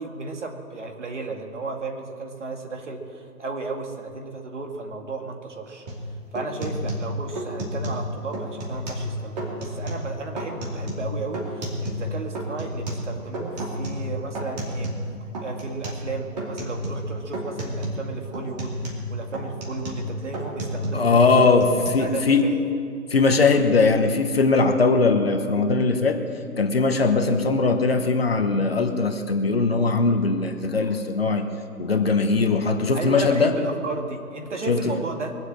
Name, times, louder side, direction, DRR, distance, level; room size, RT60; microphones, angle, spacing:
voice 1, 0.0-5.9 6.3-14.9 15.4-21.5 22.0-22.6 32.9-35.3, right 3 dB, 50° right, 3 dB, 2.2 m, -34 dB
sound 1, 5.9-6.0 6.3-8.1 8.3-9.1 9.4-10.1 10.4-12.1 12.3-15.1 15.3-16.1 16.4-17.1 17.3-18.0 18.3-21.1 21.3-21.9, equal, 25° right, 2.7 m, -31 dB
voice 2, 20.9-22.4 23.1-26.2 26.6-31.4 31.8-33.5 34.7-35.0, left 4 dB, 40° left, 6 dB, 1.1 m, -20 dB
22.5 x 7.9 x 7.6 m, 2.5 s
figure-of-eight pair, 160°, 46 cm